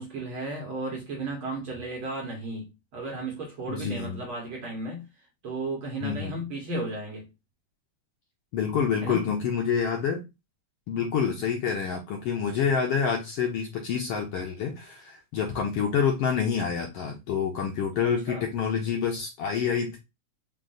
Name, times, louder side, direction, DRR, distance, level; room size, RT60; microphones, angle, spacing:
voice 1, 0.0-5.1 5.4-7.3 9.0-9.3 11.3-11.4 18.0-18.5, right 2 dB, 55° right, 1.7 m, -34 dB
voice 2, 3.7-4.2 6.0-6.4 8.5-10.2 10.9-20.0, left 7 dB, 75° left, 1.4 m, -27 dB
5.1 x 2.5 x 3.8 m
omnidirectional pair, 3.5 m